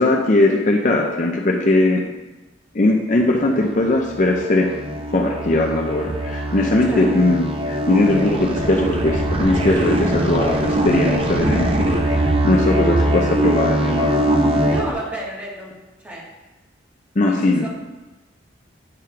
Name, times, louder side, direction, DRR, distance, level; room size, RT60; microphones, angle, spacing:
voice 1, 0.0-2.1 2.7-4.7 5.1-14.6 17.2-17.7, left 2 dB, 40° left, 0 dB, 0.6 m, -19 dB
sound 1, 3.5-14.9, right 1 dB, 30° right, 0.7 m, -22 dB
voice 2, 14.6-15.7 16.0-16.2 17.2-17.7, right 1 dB, 10° right, -6 dB, 1.6 m, -31 dB
8.9 x 3.7 x 5.6 m, 1.1 s
head